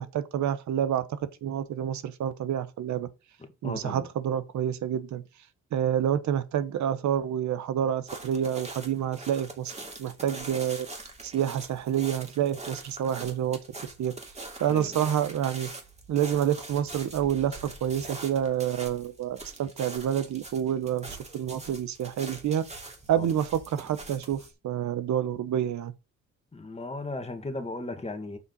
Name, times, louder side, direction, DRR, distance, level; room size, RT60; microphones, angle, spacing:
voice 1, 0.0-3.1 3.6-5.2 5.7-9.7 10.0-10.9 11.2-13.6 14.0-14.1 14.6-15.7 16.1-22.6 23.1-25.9, right 10 dB, 70° right, 1.1 m, -28 dB
voice 2, 3.6-4.1 14.7-14.9 23.2-23.3 26.5-28.4, left 2 dB, 20° left, 2.1 m, -36 dB
sound 1, 8.1-24.5, right 2 dB, 20° right, 2.8 m, -43 dB
7.8 x 5.6 x 4.0 m
cardioid pair, 90°, 30 cm